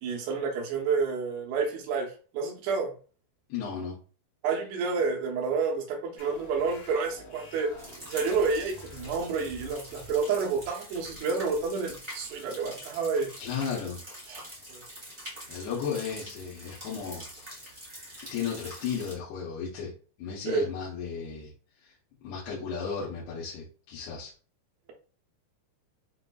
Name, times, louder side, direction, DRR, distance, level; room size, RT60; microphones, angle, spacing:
voice 1, 0.0-2.9 4.4-7.7 8.1-13.3 14.3-14.4 14.7-14.8 20.5-20.6, right 5 dB, 85° right, 0 dB, 3.0 m, -29 dB
voice 2, 3.5-4.0 13.4-14.0 15.5-17.7 18.3-19.9 20.2-21.5 21.8-21.9 22.2-24.3, left 6 dB, 80° left, -7 dB, 3.0 m, -34 dB
sound 1, 6.2-13.3, left 3 dB, 60° left, 2.8 m, -49 dB
sound 2, 7.8-19.1, equal, 25° right, 0.5 m, -45 dB
7.0 x 2.6 x 2.3 m, 0.39 s
omnidirectional pair, 4.6 m